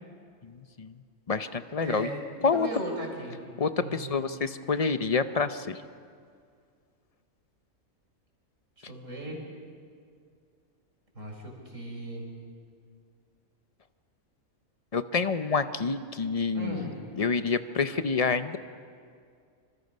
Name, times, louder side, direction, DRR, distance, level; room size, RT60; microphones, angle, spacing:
voice 1, 0.4-0.9 1.3-2.1 2.4-2.7 3.6-5.8 14.9-18.6, left 4 dB, 40° left, 11 dB, 0.5 m, -28 dB
voice 2, 1.8-2.2 2.5-3.4 3.7-4.2 8.9-9.4 11.1-12.3 16.5-17.0, right 1 dB, 60° right, 0 dB, 4.8 m, -37 dB
26.5 x 25.5 x 5.4 m, 2.2 s
omnidirectional pair, 1.5 m